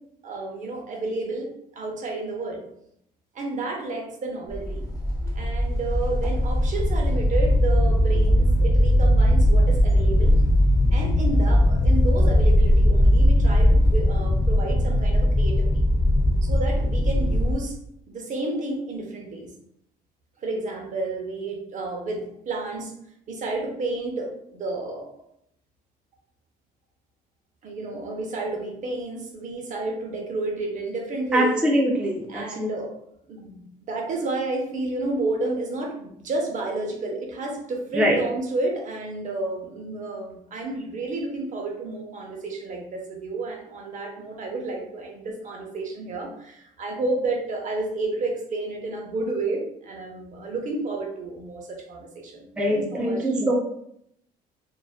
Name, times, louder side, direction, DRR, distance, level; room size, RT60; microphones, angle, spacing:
voice 1, 0.2-2.6 3.3-4.8 5.3-10.3 10.9-15.8 16.4-17.8 18.1-19.5 20.4-22.9 23.3-25.1 27.6-31.6 32.3-32.9 33.3-53.5, right 2 dB, 50° right, 0 dB, 0.6 m, -31 dB
sound 1, 4.5-17.5, left 1 dB, 20° left, 0.7 m, -19 dB
voice 2, 31.3-32.7 37.9-38.2 52.6-53.5, equal, 5° right, -1 dB, 0.3 m, -23 dB
2.4 x 2.1 x 2.3 m, 0.73 s
cardioid pair, 110°, 17 cm